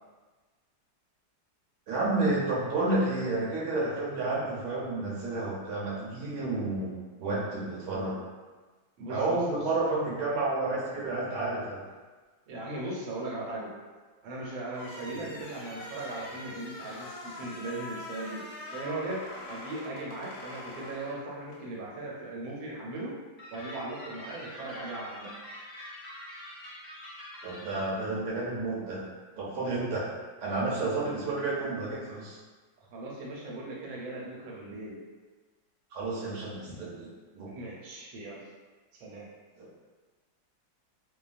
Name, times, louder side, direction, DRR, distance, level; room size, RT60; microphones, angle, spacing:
voice 1, 1.9-6.9 7.2-8.1 9.1-11.8 27.4-29.0 29.4-30.0 30.4-32.4 35.9-37.5 39.6-39.7, right 2 dB, 65° right, -6 dB, 1.0 m, -30 dB
voice 2, 9.0-9.7 12.5-13.7 14.2-18.4 18.7-23.1 23.5-25.3 30.9-31.1 32.8-35.0 36.6-36.8 37.5-38.5 38.9-39.3, right 2 dB, 90° right, -4 dB, 1.5 m, -38 dB
sound 1, 14.7-21.7, left 2 dB, 70° left, 1.0 m, -43 dB
sound 2, 23.4-27.8, left 1 dB, 40° left, 0.9 m, -45 dB
3.0 x 2.2 x 2.4 m, 1.3 s
omnidirectional pair, 2.1 m